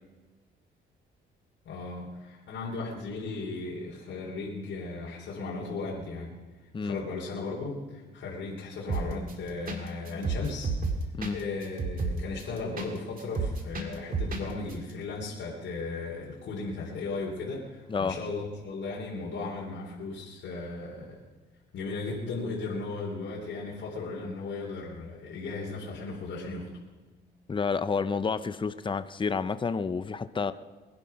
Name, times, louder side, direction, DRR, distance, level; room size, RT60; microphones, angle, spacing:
voice 1, 1.7-6.3 6.8-10.7 11.3-21.2 21.7-26.7, left 3 dB, 70° left, -4 dB, 3.5 m, -36 dB
sound 1, 8.9-9.3 9.7-9.8 10.1-12.9 13.2-14.4 14.7-14.8, right 4 dB, 45° right, 2.4 m, -30 dB
voice 2, 27.5-30.5, left 5 dB, 25° left, 13 dB, 0.7 m, -30 dB
22.0 x 10.5 x 5.8 m, 1.3 s
cardioid pair, 90°, 20 cm